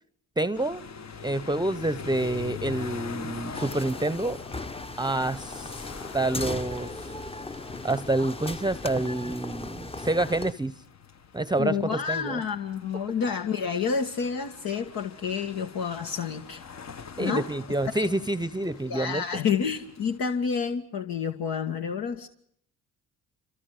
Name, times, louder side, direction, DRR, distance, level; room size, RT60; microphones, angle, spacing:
voice 1, 0.4-0.8 1.2-4.4 5.0-5.9 6.1-6.9 7.8-10.7 11.3-12.4 17.2-19.2, right 2 dB, 10° right, 0.8 m, -28 dB
sound 1, 0.5-20.2, left 6 dB, 45° left, 1.3 m, -44 dB
sound 2, 3.5-10.5, left 2 dB, 15° left, 0.9 m, -37 dB
voice 2, 11.6-16.6 17.2-17.5 18.9-22.3, left 6 dB, 70° left, 1.9 m, -29 dB
27.5 x 26.0 x 4.9 m
supercardioid pair, 70°, 36 cm